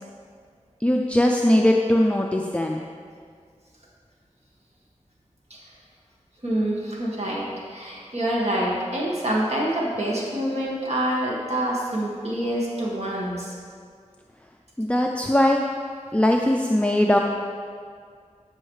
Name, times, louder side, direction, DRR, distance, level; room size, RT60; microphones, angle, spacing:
voice 1, 0.8-2.8 14.8-15.7 16.1-17.2, left 1 dB, 10° left, 1 dB, 0.4 m, -20 dB
voice 2, 6.4-13.5, right 1 dB, 60° right, -4 dB, 1.8 m, -26 dB
13.0 x 5.6 x 3.2 m, 2.1 s
wide cardioid pair, 60°, 13 cm